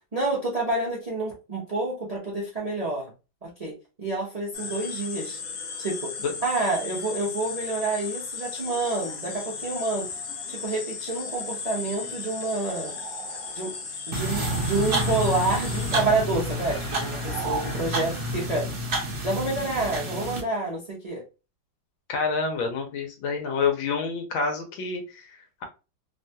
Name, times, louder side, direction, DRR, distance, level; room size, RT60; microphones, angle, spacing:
voice 1, 0.1-3.1 3.4-5.4 5.8-6.1 6.4-10.1 10.5-12.9 13.5-13.8 14.1-18.7 19.2-21.2, right 2 dB, 85° right, -4 dB, 0.3 m, -28 dB
sound 1, 4.5-18.5, left 5 dB, 60° left, 1.0 m, -36 dB
sound 2, 12.9-15.1 15.4-17.8, right 5 dB, 70° right, 1.3 m, -40 dB
sound 3, 14.1-20.4, right 1 dB, 50° right, 0.8 m, -29 dB
voice 2, 22.1-25.6, left 5 dB, 90° left, 3 dB, 1.5 m, -28 dB
3.4 x 2.2 x 2.6 m, 0.30 s
omnidirectional pair, 2.1 m